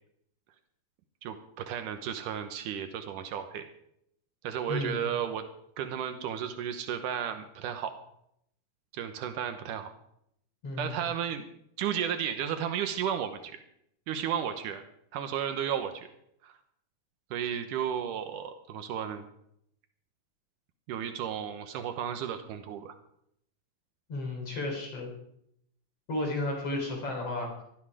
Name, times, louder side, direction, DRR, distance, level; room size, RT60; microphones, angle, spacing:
voice 1, 1.2-3.7 4.4-5.5 5.8-7.9 8.9-9.9 10.8-11.4 11.8-13.6 14.1-14.8 15.1-16.1 16.4-16.6 17.3-19.3 20.9-23.0, right 9 dB, 85° right, 8 dB, 2.6 m, -33 dB
voice 2, 4.7-5.0 10.6-11.0 24.1-25.1 26.1-27.6, left 2 dB, 50° left, 0 dB, 4.6 m, -33 dB
17.5 x 13.0 x 4.9 m, 0.73 s
omnidirectional pair, 3.6 m